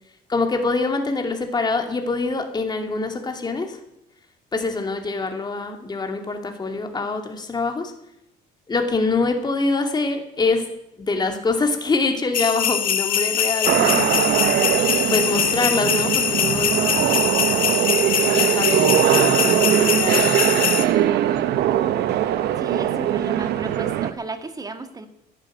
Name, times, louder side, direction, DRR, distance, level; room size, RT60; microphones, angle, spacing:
voice 1, 0.3-3.8 4.5-7.9 8.7-10.6 11.0-14.3 15.1-17.3 18.3-21.1, left 3 dB, 25° left, 4 dB, 2.5 m, -25 dB
sound 1, 12.3-20.9, left 9 dB, 55° left, 1.6 m, -22 dB
sound 2, 13.6-24.1, right 12 dB, 80° right, 1.0 m, -21 dB
voice 2, 22.6-25.1, right 3 dB, 20° right, 8 dB, 1.8 m, -33 dB
11.5 x 10.5 x 9.1 m, 0.82 s
cardioid pair, 110°, 17 cm